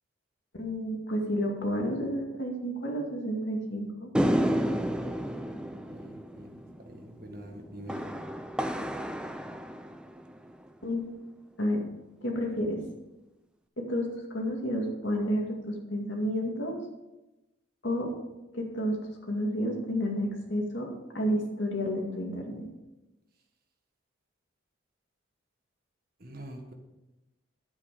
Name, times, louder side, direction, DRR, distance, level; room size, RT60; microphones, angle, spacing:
voice 1, 0.5-4.1 10.8-11.0 11.6-11.8 12.2-12.8 13.8-16.8 17.8-18.1 18.5-19.0 19.3-22.7, equal, 70° left, 0 dB, 2.2 m, -30 dB
sound 1, 4.1-10.6, equal, 5° right, 0.5 m, -31 dB
voice 2, 5.9-6.6 6.9-8.0 26.2-26.7, right 1 dB, 50° right, 3 dB, 1.6 m, -45 dB
10.5 x 8.2 x 5.0 m, 1.0 s
head